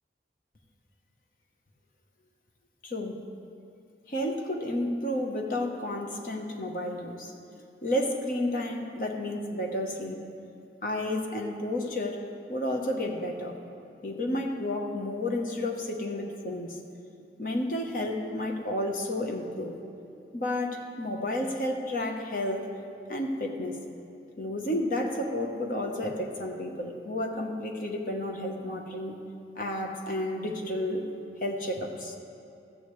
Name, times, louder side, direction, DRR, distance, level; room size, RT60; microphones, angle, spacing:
voice 1, 2.8-3.2 4.1-7.3 7.8-10.2 10.8-12.2 12.5-13.6 14.0-16.8 17.4-19.8 20.3-22.7 23.1-23.8 24.4-29.1 29.6-31.1 31.4-32.2, left 1 dB, 50° left, 2 dB, 0.9 m, -31 dB
14.0 x 8.6 x 3.2 m, 2.8 s
head